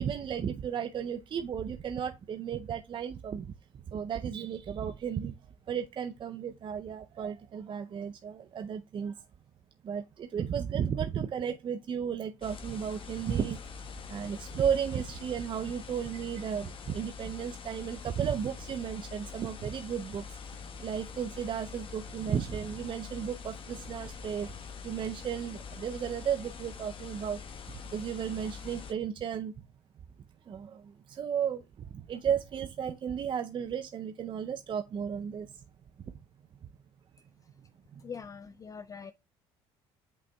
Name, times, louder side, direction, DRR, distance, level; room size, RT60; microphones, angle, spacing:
voice 1, 0.0-3.5 3.9-5.3 5.7-9.1 9.8-13.6 14.1-20.2 20.8-24.5 24.8-27.4 27.9-29.5 30.5-30.8 31.2-31.6 32.1-35.5, right 8 dB, 40° right, 0.5 m, -34 dB
sound 1, 12.4-28.9, left 6 dB, 45° left, 1.1 m, -44 dB
voice 2, 38.0-39.1, left 6 dB, 25° left, 0.4 m, -43 dB
8.3 x 5.4 x 2.2 m
hypercardioid pair, 70°, 13 cm